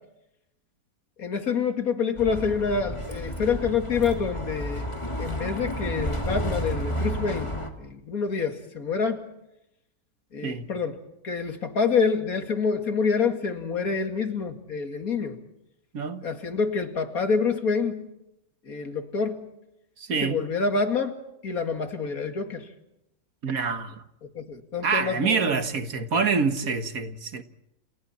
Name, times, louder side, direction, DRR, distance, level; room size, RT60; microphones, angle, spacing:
voice 1, 1.2-4.8 5.2-7.5 7.8-9.3 10.3-11.0 11.2-15.4 16.2-18.0 18.7-19.5 20.2-21.2 21.4-22.7 24.3-25.6 26.6-26.8, left 5 dB, 70° left, 2.6 m, -27 dB
Bus, 2.2-7.7, equal, 20° left, 2.5 m, -31 dB
voice 2, 15.9-16.2 20.0-20.4 23.4-24.0 24.8-27.4, right 5 dB, 65° right, 1.9 m, -26 dB
29.5 x 29.5 x 4.3 m
omnidirectional pair, 1.6 m